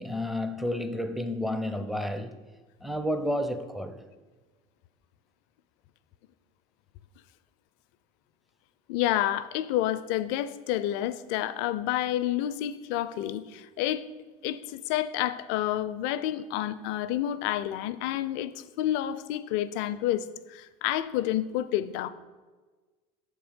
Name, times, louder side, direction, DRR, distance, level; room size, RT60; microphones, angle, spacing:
voice 1, 0.0-2.4 2.8-4.0, left 1 dB, ahead, 0.5 m, -31 dB
voice 2, 8.9-14.0 14.4-22.1, left 12 dB, 65° left, 0.4 m, -29 dB
6.7 x 3.5 x 5.2 m
hypercardioid pair, 80°, 20 cm